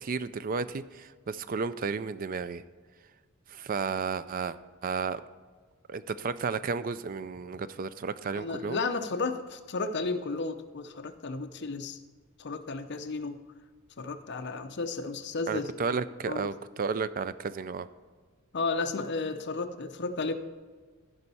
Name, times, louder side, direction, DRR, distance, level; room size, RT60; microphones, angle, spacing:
voice 1, 0.0-2.6 3.5-4.6 4.8-5.2 5.9-8.8 15.5-17.9, right 5 dB, 40° right, 14 dB, 0.4 m, -33 dB
voice 2, 8.3-12.0 12.4-13.4 14.0-15.7 16.3-16.5 18.5-20.3, left 3 dB, 55° left, 7 dB, 0.7 m, -33 dB
15.0 x 5.4 x 4.2 m, 1.5 s
head